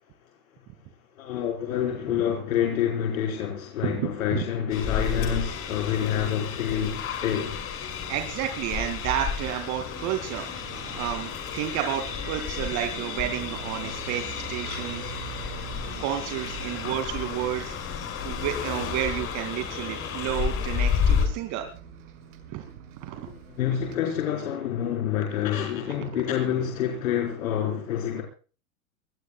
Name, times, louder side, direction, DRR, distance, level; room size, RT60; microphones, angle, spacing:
voice 1, 1.2-7.6 23.3-28.2, left 9 dB, 70° left, 4.5 m, -27 dB
sound 1, 4.7-21.3, left 7 dB, 30° left, 5.8 m, -31 dB
voice 2, 8.1-10.5 11.0-15.1 16.0-17.7 18.2-21.7 22.5-22.7 23.0-23.3, right 11 dB, 40° right, 2.5 m, -31 dB
Bus, 10.1-24.0, right 7 dB, 60° right, 6.3 m, -44 dB
24.0 x 20.5 x 2.3 m
hypercardioid pair, 120°, 42 cm